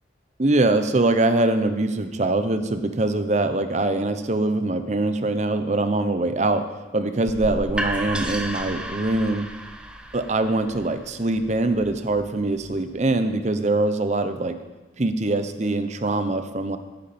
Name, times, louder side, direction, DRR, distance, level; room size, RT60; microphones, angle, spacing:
voice 1, 0.4-6.7 6.9-9.5 10.1-14.6 15.0-16.8, right 2 dB, 40° right, 9 dB, 0.8 m, -23 dB
sound 1, 7.3-13.1, right 1 dB, 5° right, 0.8 m, -33 dB
14.5 x 10.5 x 4.3 m, 1.2 s
head